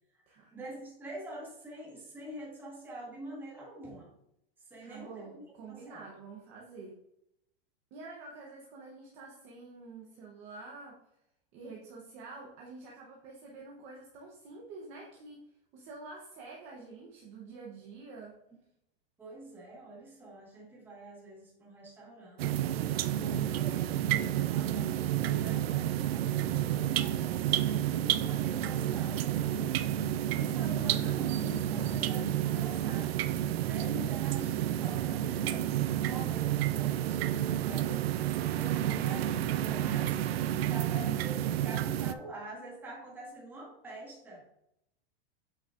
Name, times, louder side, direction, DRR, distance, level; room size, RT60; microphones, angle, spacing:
voice 1, 0.5-4.1 4.6-6.0 19.2-22.7 23.2-30.0 30.3-33.2 33.6-38.2 38.5-44.4, right 1 dB, 5° right, -4 dB, 1.4 m, -46 dB
voice 2, 4.8-7.0 7.9-11.0 11.5-18.4 31.7-32.0, right 3 dB, 25° right, -2 dB, 0.8 m, -48 dB
sound 1, 22.4-42.1, right 12 dB, 85° right, 0.5 m, -30 dB
7.9 x 6.2 x 2.5 m, 0.81 s
supercardioid pair, 175°, 30 cm